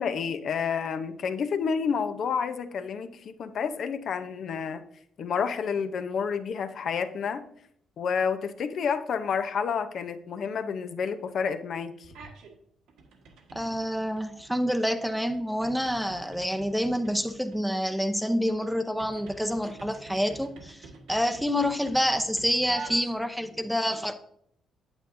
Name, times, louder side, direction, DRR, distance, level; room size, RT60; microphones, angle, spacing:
voice 1, 0.0-4.8 5.2-7.5 8.0-12.1, left 6 dB, 60° left, 10 dB, 0.7 m, -29 dB
sound 1, 12.0-12.5 12.9-23.5, right 3 dB, 85° right, 1.5 m, -47 dB
voice 2, 13.5-24.1, equal, ahead, 7 dB, 0.7 m, -28 dB
8.9 x 8.7 x 2.7 m, 0.69 s
cardioid pair, 90°, 0 cm